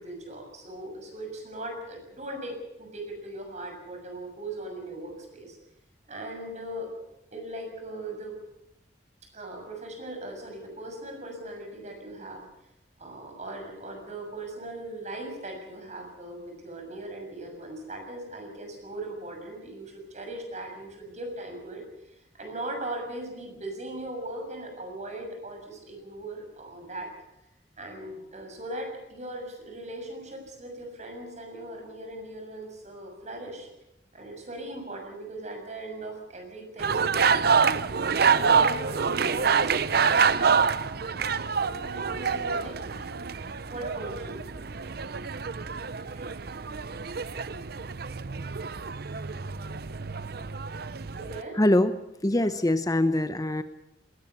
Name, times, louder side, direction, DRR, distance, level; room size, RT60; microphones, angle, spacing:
voice 1, 0.0-5.6 6.1-6.9 7.3-8.3 9.3-12.5 13.0-27.1 27.8-33.7 34.1-37.6 38.1-40.5 41.0-43.1 43.7-44.5 46.1-46.2 51.1-51.6 52.3-52.5, right 1 dB, 40° right, 4 dB, 6.8 m, -39 dB
sound 1, 36.8-51.4, right 5 dB, 60° right, 0.8 m, -27 dB
voice 2, 51.5-52.0 52.2-53.6, left 1 dB, 20° left, 10 dB, 0.9 m, -23 dB
20.5 x 18.0 x 8.2 m, 0.87 s
head